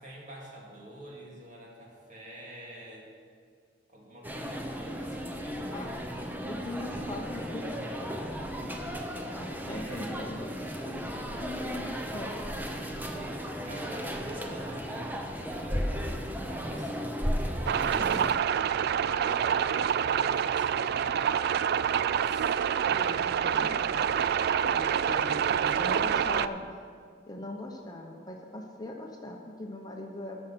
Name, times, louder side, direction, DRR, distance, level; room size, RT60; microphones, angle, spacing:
voice 1, 0.0-3.1 3.9-6.2 9.7-10.2 13.3-17.1 17.9-18.4 18.8-21.5 21.9-22.6 25.0-26.3, right 1 dB, 45° right, -2 dB, 2.4 m, -47 dB
sound 1, 4.2-18.3, equal, 10° right, 0.9 m, -35 dB
voice 2, 6.5-8.1 9.3-10.5 10.8-11.1 11.4-12.9 18.0-18.3 22.8-24.1 24.7-26.6 27.3-30.4, left 1 dB, 20° left, 1 dB, 0.9 m, -40 dB
sound 2, 17.7-26.5, right 8 dB, 60° right, 0.3 m, -27 dB
13.5 x 6.5 x 5.9 m, 2.2 s
head